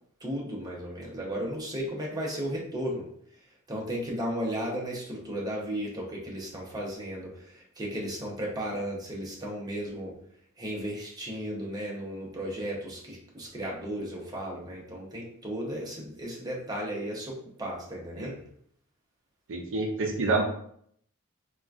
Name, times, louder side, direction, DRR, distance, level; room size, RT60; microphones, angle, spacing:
voice 1, 0.2-3.1 3.7-10.1 10.6-18.4, equal, 15° right, -3 dB, 0.7 m, -35 dB
voice 2, 19.5-20.4, right 3 dB, 60° right, 1 dB, 0.5 m, -27 dB
3.7 x 2.3 x 2.4 m, 0.66 s
head